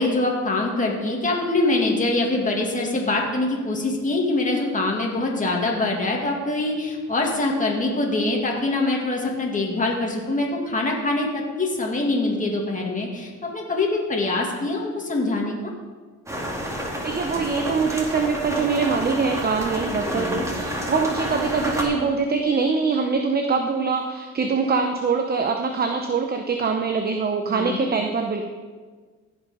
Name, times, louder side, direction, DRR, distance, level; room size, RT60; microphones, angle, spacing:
voice 1, 0.0-15.5 20.1-20.5 27.5-27.9, left 2 dB, 25° left, -1 dB, 2.1 m, -24 dB
sound 1, 16.3-21.8, equal, 10° right, 2.2 m, -29 dB
voice 2, 17.0-28.4, right 4 dB, 30° right, 4 dB, 0.8 m, -23 dB
16.0 x 5.4 x 5.0 m, 1.5 s
cardioid pair, 90°, 30 cm